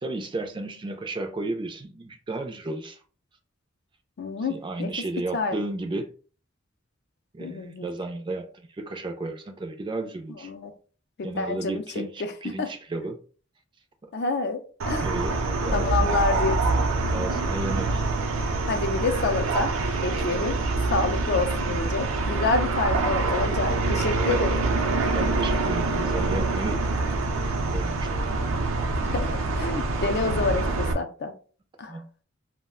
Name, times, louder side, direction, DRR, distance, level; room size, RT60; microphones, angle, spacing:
voice 1, 0.0-3.0 4.5-6.1 7.3-10.5 11.2-13.2 15.0-16.2 17.1-18.0 25.1-26.8 27.7-28.2 31.9-32.1, right 2 dB, 25° right, 0.3 m, -33 dB
voice 2, 4.2-4.9 5.3-5.6 7.4-7.9 10.4-10.7 11.2-11.8 12.2-12.3 12.6-12.7 14.1-14.6 14.9-15.1 15.7-16.5 18.7-19.7 20.0-20.6 20.9-24.6 29.1-31.3 31.8-32.0, left 3 dB, 55° left, 0.4 m, -27 dB
sound 1, 14.8-30.9, right 3 dB, 85° right, 0.5 m, -25 dB
2.3 x 2.0 x 3.5 m
head